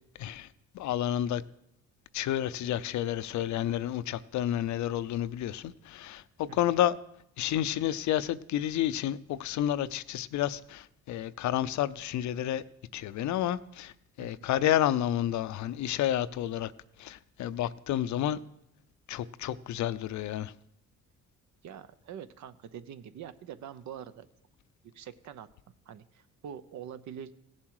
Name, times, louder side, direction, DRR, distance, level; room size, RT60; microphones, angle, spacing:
voice 1, 0.2-0.5 0.7-1.4 2.1-7.0 7.4-12.6 12.9-13.9 14.2-16.7 17.0-18.4 19.1-20.5, left 12 dB, 70° left, 15 dB, 0.6 m, -30 dB
voice 2, 21.6-24.3 24.9-25.5 25.9-27.3, right 9 dB, 70° right, 13 dB, 0.8 m, -44 dB
17.0 x 7.4 x 4.8 m, 0.81 s
cardioid pair, 90°, 30 cm